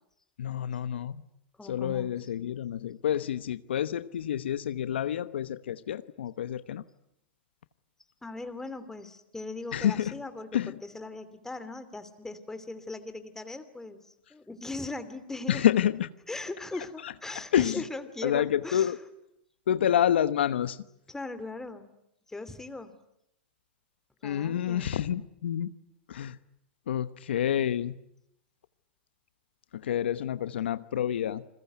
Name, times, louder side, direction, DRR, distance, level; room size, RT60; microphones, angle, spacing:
voice 1, 0.4-1.1 1.7-6.8 9.7-10.1 10.5-10.7 15.5-16.1 17.5-17.8 18.2-19.0 19.7-20.8 24.2-25.7 26.1-26.4 26.9-27.9 29.8-31.4, left 10 dB, 80° left, 1.0 m, -28 dB
voice 2, 1.6-2.1 8.2-15.7 16.3-19.0 21.1-21.9 22.3-22.9 24.2-25.0, left 2 dB, 10° left, 2.9 m, -39 dB
29.0 x 21.5 x 9.4 m
hypercardioid pair, 110°, 6 cm